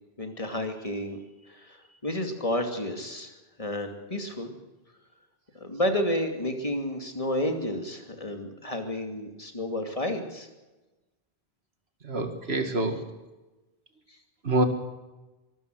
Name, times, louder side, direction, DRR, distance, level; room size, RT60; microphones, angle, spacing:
voice 1, 0.2-1.2 1.5-4.5 5.5-10.5, left 1 dB, 35° left, 5 dB, 2.6 m, -31 dB
voice 2, 12.0-13.0 14.4-14.7, right 2 dB, 85° right, 7 dB, 2.3 m, -26 dB
24.0 x 13.5 x 7.9 m, 1.1 s
omnidirectional pair, 1.0 m